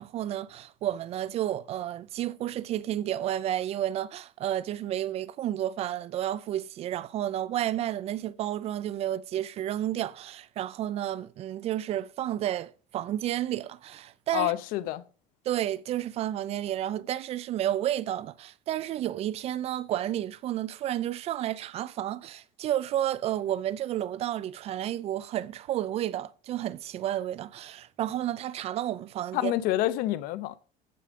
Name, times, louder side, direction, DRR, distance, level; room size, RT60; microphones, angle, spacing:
voice 1, 0.0-14.5 15.5-29.5, right 12 dB, 40° right, 0.4 m, -31 dB
voice 2, 14.3-15.0 29.3-30.6, left 15 dB, 70° left, 0.7 m, -28 dB
14.5 x 5.2 x 3.7 m
cardioid pair, 145°, 15 cm